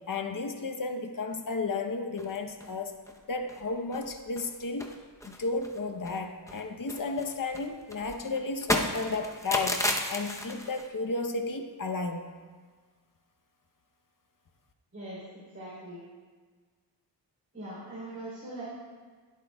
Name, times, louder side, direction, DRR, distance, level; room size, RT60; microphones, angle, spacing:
voice 1, 0.1-3.0 3.3-4.9 5.2-12.3, left 3 dB, 45° left, 6 dB, 0.9 m, -33 dB
sound 1, 2.2-2.7 3.1-3.2 3.5-3.6 3.9-4.5 4.8-6.2 6.5-10.9, left 1 dB, 5° left, 0.8 m, -33 dB
voice 2, 15.5-16.0 17.5-18.6, right 1 dB, 30° right, -9 dB, 3.5 m, -41 dB
20.5 x 8.4 x 2.3 m, 1.5 s
wide cardioid pair, 115°, 44 cm